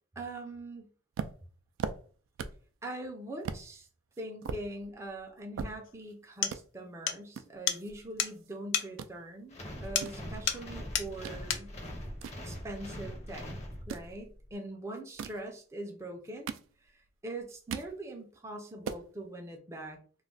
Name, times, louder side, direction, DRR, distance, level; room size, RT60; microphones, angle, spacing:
voice 1, 0.2-0.9 2.8-3.9 4.2-11.7 12.4-13.5 13.9-16.5 16.9-20.0, right 1 dB, 15° right, 1 dB, 0.4 m, -42 dB
sound 1, 1.1-2.7 3.0-3.1 3.4-3.7 4.1-6.1 6.4-6.6 7.3-8.5 8.8-9.1 9.7-11.4 11.8-13.1 13.7-14.1 15.0-15.5 16.1-17.1 17.4-18.0 18.4-18.5 18.7-19.1, right 6 dB, 90° right, 0.3 m, -40 dB
sound 2, 5.9-6.0 6.4-6.6 7.1-7.2 7.7-7.8 8.2-8.3 8.7-8.9 10.0-10.2 10.5-10.7 10.9-11.1 11.5-11.7, left 9 dB, 80° left, 0.4 m, -31 dB
sound 3, 9.5-14.2, equal, 35° left, 0.6 m, -42 dB
2.3 x 2.1 x 3.8 m, 0.41 s
head